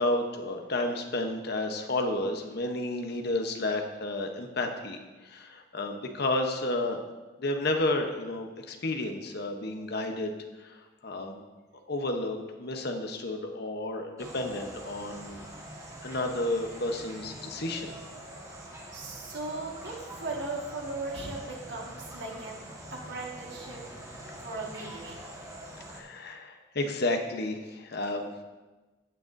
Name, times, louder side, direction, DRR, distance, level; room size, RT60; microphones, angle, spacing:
voice 1, 0.0-7.1 7.4-10.3 10.6-10.8 11.0-11.4 11.9-15.5 16.0-17.9 25.9-28.4, left 2 dB, 55° left, 4 dB, 0.9 m, -31 dB
sound 1, 14.2-26.0, right 1 dB, 15° right, 1.4 m, -44 dB
voice 2, 18.9-22.7 22.9-23.8 24.4-25.2, right 3 dB, 60° right, -2 dB, 1.7 m, -37 dB
16.0 x 6.4 x 2.6 m, 1.2 s
head